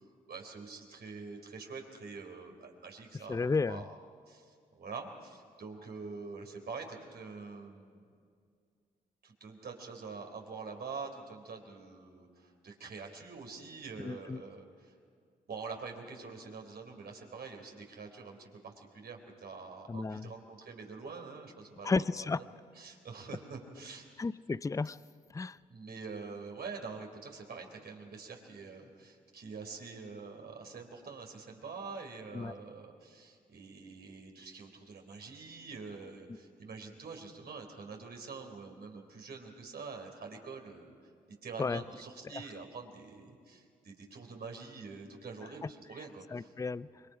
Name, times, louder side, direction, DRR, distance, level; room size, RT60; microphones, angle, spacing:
voice 1, 0.3-3.9 4.3-8.0 9.2-14.9 15.5-22.5 22.8-24.1 25.7-40.9 41.4-46.5, right 4 dB, 55° right, 2 dB, 3.8 m, -45 dB
voice 2, 3.3-3.8 14.0-14.4 19.9-20.3 21.8-22.4 24.2-25.0 25.3-25.6 32.3-32.6 41.6-41.8 46.3-47.0, left 4 dB, 15° left, 18 dB, 0.5 m, -33 dB
26.5 x 22.5 x 5.0 m, 2.2 s
hypercardioid pair, 45°, 19 cm